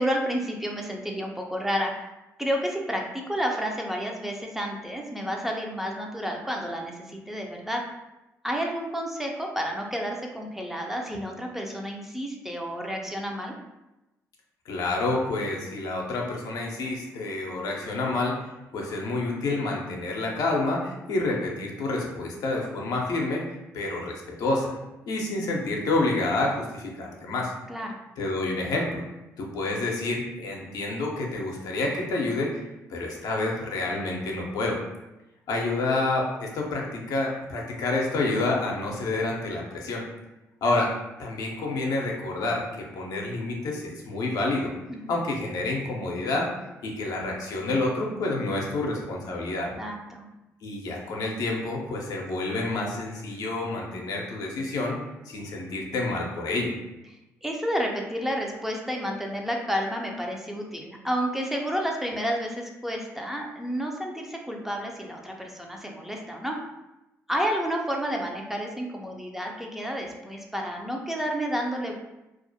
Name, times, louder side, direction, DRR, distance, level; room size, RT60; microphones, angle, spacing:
voice 1, 0.0-2.1 2.4-7.8 8.4-13.5 27.7-28.0 44.9-45.1 49.8-50.3 57.4-66.6 67.3-71.9, equal, 5° right, 0 dB, 0.4 m, -30 dB
voice 2, 14.7-18.4 18.7-23.4 23.7-24.8 25.1-27.5 28.2-29.0 29.4-32.6 32.9-34.8 35.5-40.0 40.6-40.9 41.2-44.7 45.1-46.5 46.8-49.7 50.6-55.0 55.3-56.7, left 2 dB, 70° left, -1 dB, 0.5 m, -28 dB
2.4 x 2.0 x 2.6 m, 0.98 s
supercardioid pair, 60°, 7 cm